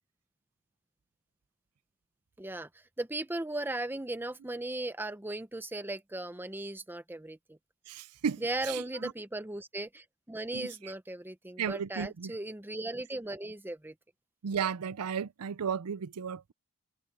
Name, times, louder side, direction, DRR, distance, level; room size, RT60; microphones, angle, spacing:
voice 1, 2.4-2.7 3.0-7.6 8.4-13.9, right 2 dB, 10° right, 0.7 m, -37 dB
voice 2, 7.9-9.1 10.5-10.7 11.6-12.3 14.4-16.5, right 7 dB, 85° right, 0.5 m, -34 dB
head